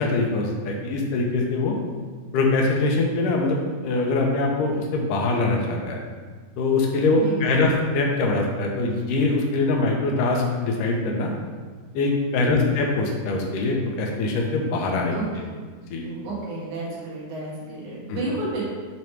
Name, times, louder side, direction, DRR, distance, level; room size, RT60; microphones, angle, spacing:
voice 1, 0.0-1.8 2.3-6.0 6.6-11.3 11.9-15.1 15.9-16.1 18.1-18.2, left 3 dB, 85° left, 0 dB, 2.4 m, -23 dB
voice 2, 7.1-7.6 12.3-12.6 15.1-15.5 16.0-18.7, right 2 dB, 65° right, -6 dB, 2.7 m, -32 dB
7.0 x 3.1 x 4.5 m, 1.5 s
omnidirectional pair, 3.8 m